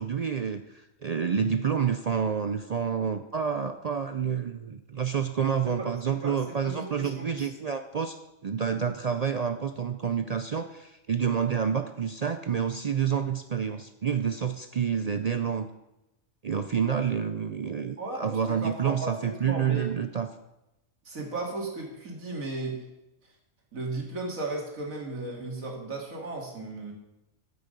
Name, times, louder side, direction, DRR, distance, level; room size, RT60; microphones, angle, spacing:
voice 1, 0.0-8.2 8.4-15.7 16.4-20.3, right 7 dB, 70° right, 9 dB, 0.3 m, -28 dB
voice 2, 5.5-7.5 18.0-19.9 21.0-22.8 23.7-26.9, right 2 dB, 85° right, -1 dB, 2.8 m, -35 dB
9.3 x 8.6 x 6.6 m, 0.93 s
omnidirectional pair, 1.4 m